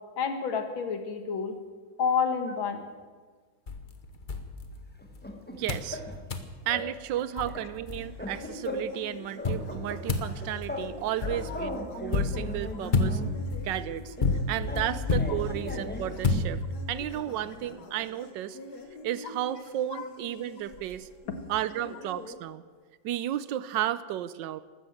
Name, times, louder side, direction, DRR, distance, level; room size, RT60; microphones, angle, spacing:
voice 1, 0.2-1.6 2.0-2.8 11.5-11.6 19.9-20.1, left 6 dB, 70° left, 7 dB, 2.2 m, -29 dB
sound 1, 3.7-5.2 5.7-5.9 6.3-6.5 7.1-7.2 7.4-8.5 9.4-17.0, left 3 dB, 35° left, 0.9 m, -30 dB
sound 2, 5.0-6.4 6.7-6.9 7.2-9.1 9.4-10.9 11.2-13.4 14.2-16.2, left 1 dB, 5° left, 1.1 m, -38 dB
voice 2, 5.5-6.0 6.7-13.2 13.6-14.2 14.5-16.6 16.9-18.6 19.0-21.1 21.5-22.6 23.0-24.6, right 12 dB, 70° right, 16 dB, 1.2 m, -33 dB
sound 3, 7.9-22.4, left 2 dB, 50° left, 2.0 m, -47 dB
13.5 x 13.0 x 7.8 m, 1.4 s
omnidirectional pair, 2.2 m